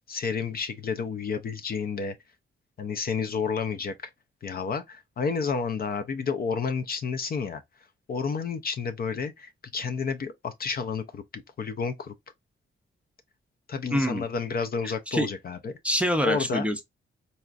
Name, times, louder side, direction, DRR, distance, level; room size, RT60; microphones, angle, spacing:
voice 1, 0.1-2.2 2.8-3.9 4.4-7.6 8.1-11.2 11.6-12.1 13.7-15.7 16.2-16.7, left 5 dB, 45° left, 0.4 m, -30 dB
voice 2, 13.9-14.3 14.8-15.3 15.8-16.8, equal, 5° right, 0.5 m, -26 dB
4.0 x 2.4 x 2.3 m
wide cardioid pair, 150°, 21 cm